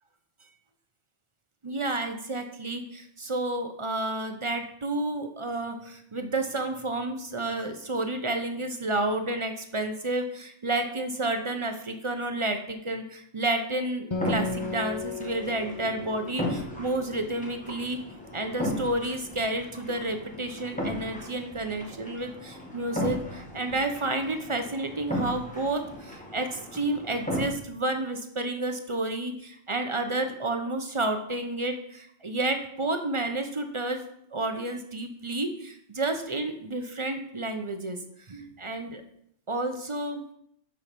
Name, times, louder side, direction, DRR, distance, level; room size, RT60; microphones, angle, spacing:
voice 1, 1.6-18.0 18.3-34.0 34.3-38.0 38.3-39.0 39.5-40.2, right 2 dB, 30° right, 6 dB, 0.7 m, -30 dB
Acoustic guitar, 14.1-17.8, left 3 dB, 30° left, 0.6 m, -35 dB
sound 1, 14.1-27.5, left 1 dB, 5° left, 1.6 m, -36 dB
7.4 x 6.2 x 5.2 m, 0.71 s
omnidirectional pair, 1.4 m